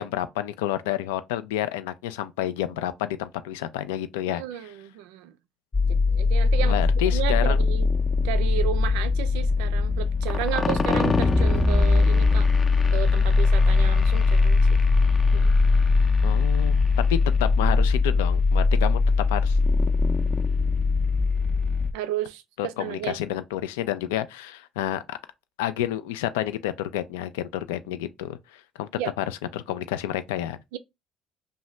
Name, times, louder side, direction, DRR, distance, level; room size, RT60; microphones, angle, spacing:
voice 1, 0.0-4.4 6.6-7.6 16.2-16.8 17.1-19.0 19.3-19.6 22.6-25.2 25.6-28.9 29.2-29.3 29.5-30.6, left 12 dB, 85° left, 0.3 m, -29 dB
voice 2, 4.3-5.3 5.9-7.9 8.2-12.5 12.9-14.8 15.3-15.5 21.9-23.2 29.0-29.1 30.7-30.8, right 11 dB, 80° right, 0.3 m, -33 dB
sound 1, 5.7-21.9, left 4 dB, 35° left, 0.5 m, -21 dB
2.7 x 2.1 x 3.1 m
hypercardioid pair, 65°, 0 cm